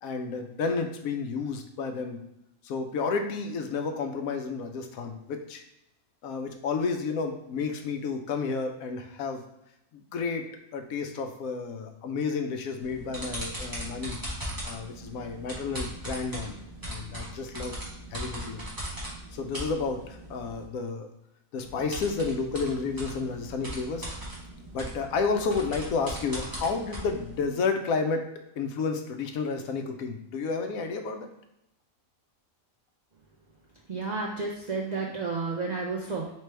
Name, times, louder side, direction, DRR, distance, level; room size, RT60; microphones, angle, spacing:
voice 1, 0.0-2.2 2.6-5.6 6.2-9.4 9.9-14.2 14.6-16.6 16.9-17.8 18.1-18.6 19.3-21.1 21.5-24.1 24.7-28.3 28.6-31.3, left 4 dB, 85° left, 5 dB, 1.0 m, -31 dB
sound 1, 12.8-20.6 21.6-27.4, right 1 dB, 15° right, 1.1 m, -39 dB
voice 2, 33.9-36.3, right 4 dB, 55° right, -1 dB, 0.4 m, -31 dB
4.6 x 3.3 x 3.2 m, 0.84 s
omnidirectional pair, 1.4 m